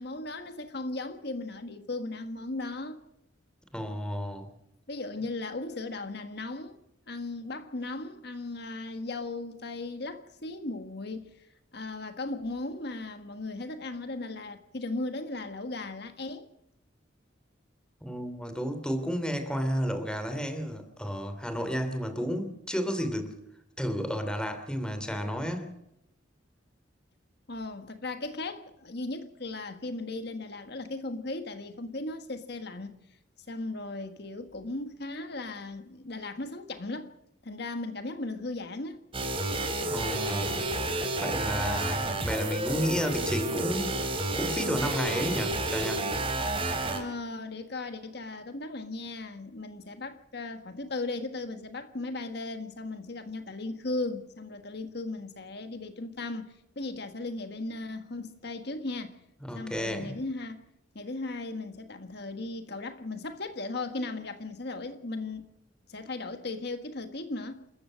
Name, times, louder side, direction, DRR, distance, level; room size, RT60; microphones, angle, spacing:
voice 1, 0.0-3.0 4.9-6.8 7.1-11.3 11.7-16.5 27.5-32.9 33.5-37.1 37.4-39.0 46.9-59.2 59.5-60.6 60.9-65.5 65.9-67.6, left 2 dB, 60° left, 1.6 m, -37 dB
voice 2, 3.7-4.5 18.0-23.3 23.8-25.7 39.8-40.6 41.2-43.9 44.4-46.1 59.4-60.2, equal, 5° left, 2.9 m, -32 dB
sound 1, 39.1-47.0, right 2 dB, 30° right, 3.6 m, -30 dB
29.0 x 14.5 x 6.4 m
head